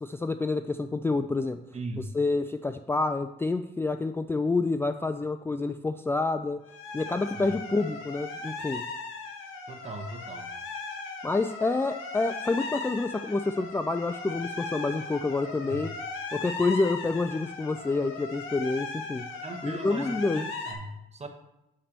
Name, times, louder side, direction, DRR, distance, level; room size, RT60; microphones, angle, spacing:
voice 1, 0.0-1.6 2.2-6.6 6.9-8.8 11.2-15.9 16.3-19.3 19.6-20.4, left 3 dB, 10° left, 8 dB, 0.3 m, -28 dB
voice 2, 1.7-2.1 7.3-7.5 9.7-10.5 15.7-15.8 19.4-21.3, right 2 dB, 35° right, 5 dB, 1.2 m, -39 dB
sound 1, 6.7-20.7, left 4 dB, 80° left, 1.4 m, -38 dB
8.7 x 3.3 x 6.6 m, 0.90 s
cardioid pair, 90°, 20 cm